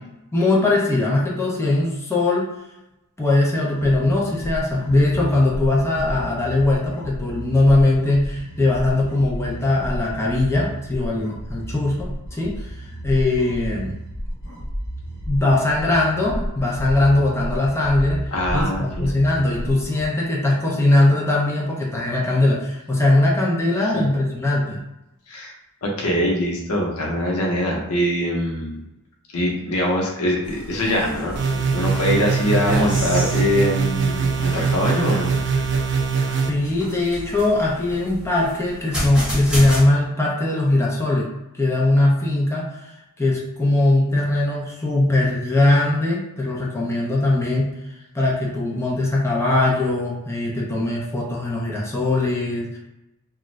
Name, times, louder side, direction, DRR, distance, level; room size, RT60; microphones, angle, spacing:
voice 1, 0.3-2.5 3.2-12.8 13.0-14.0 15.3-18.2 18.5-24.8 36.4-41.3 41.5-47.7 48.1-52.8, left 2 dB, 10° left, -4 dB, 0.6 m, -20 dB
sound 1, 3.7-20.1, equal, 55° left, 1.0 m, -32 dB
voice 2, 18.3-19.1 23.9-24.1 25.3-25.5 25.8-28.8 29.3-31.4 31.7-35.8, equal, 80° left, -1 dB, 0.7 m, -23 dB
sound 2, 30.4-39.8, equal, 5° right, 1.1 m, -32 dB
sound 3, 31.4-36.5, right 5 dB, 55° right, 0.4 m, -22 dB
2.5 x 2.3 x 3.1 m, 0.93 s
head